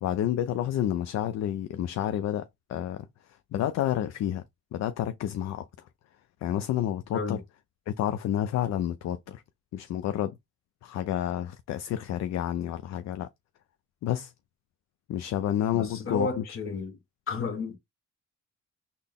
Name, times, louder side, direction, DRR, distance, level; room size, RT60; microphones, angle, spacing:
voice 1, 0.0-3.1 3.5-4.4 4.7-5.7 6.4-7.4 7.9-9.4 9.7-10.3 10.8-13.3 14.0-14.3 15.1-16.7, left 11 dB, 60° left, 0.4 m, -29 dB
voice 2, 15.7-17.0 17.3-17.8, left 4 dB, 45° left, 1.0 m, -32 dB
3.9 x 2.1 x 3.5 m
cardioid pair, 90°, 30 cm